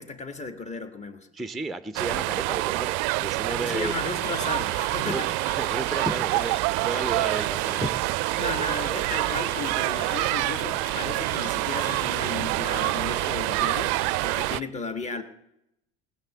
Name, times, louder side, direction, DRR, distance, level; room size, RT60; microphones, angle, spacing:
voice 1, 0.0-1.3 3.5-5.3 8.4-15.2, left 3 dB, 20° left, 9 dB, 1.5 m, -34 dB
voice 2, 1.3-3.9 5.0-5.2 5.6-8.0, right 2 dB, ahead, 12 dB, 0.6 m, -33 dB
sound 1, 2.0-14.6, right 21 dB, 50° right, 0.4 m, -27 dB
sound 2, 3.7-14.5, left 9 dB, 85° left, 0.6 m, -44 dB
19.0 x 6.8 x 7.8 m, 0.83 s
figure-of-eight pair, 65°, 33 cm